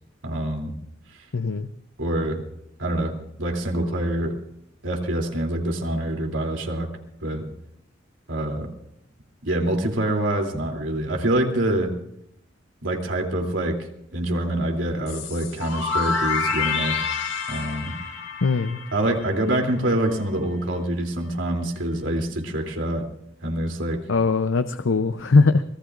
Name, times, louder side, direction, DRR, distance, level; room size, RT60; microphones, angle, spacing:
voice 1, 0.2-0.7 2.0-2.4 2.8-4.3 4.8-6.9 7.2-7.5 8.3-8.7 9.4-11.9 12.8-13.9 14.1-17.1 17.5-17.9 18.9-23.1 23.4-24.0, right 1 dB, 80° right, 1 dB, 3.1 m, -25 dB
voice 2, 1.3-1.7 18.4-18.8 24.1-25.6, left 4 dB, 90° left, 10 dB, 0.7 m, -20 dB
sound 1, 15.1-19.8, left 5 dB, 65° left, 2.2 m, -28 dB
25.0 x 19.5 x 2.5 m, 0.78 s
head